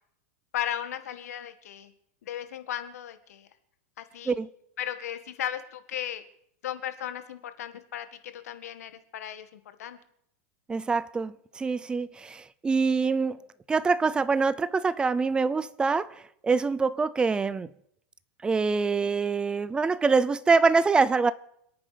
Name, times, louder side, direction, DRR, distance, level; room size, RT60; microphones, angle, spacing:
voice 1, 0.5-1.9 2.2-3.5 4.0-4.4 4.8-6.2 6.6-10.0, left 11 dB, 85° left, 1.8 m, -36 dB
voice 2, 10.7-13.4 13.7-17.7 18.4-21.3, right 4 dB, 10° right, 0.6 m, -25 dB
27.5 x 9.2 x 5.2 m
supercardioid pair, 145°, 8 cm